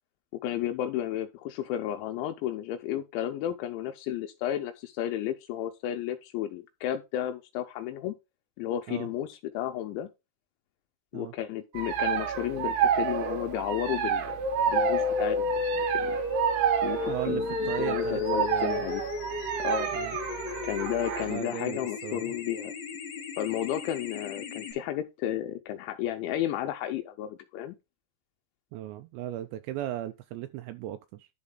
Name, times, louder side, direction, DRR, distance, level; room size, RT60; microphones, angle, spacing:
voice 1, 0.4-8.1 8.6-10.1 11.1-14.4 14.7-16.2 16.8-19.0 19.6-19.9 20.6-22.7 23.4-27.8, left 11 dB, 85° left, 2.9 m, -33 dB
sound 1, 11.7-21.4, right 7 dB, 70° right, 2.1 m, -30 dB
sound 2, 14.7-24.7, left 3 dB, 60° left, 2.8 m, -33 dB
voice 2, 17.0-18.9 19.9-20.2 21.3-22.4 28.7-31.3, right 13 dB, 85° right, 2.6 m, -37 dB
10.5 x 4.1 x 3.7 m
omnidirectional pair, 5.3 m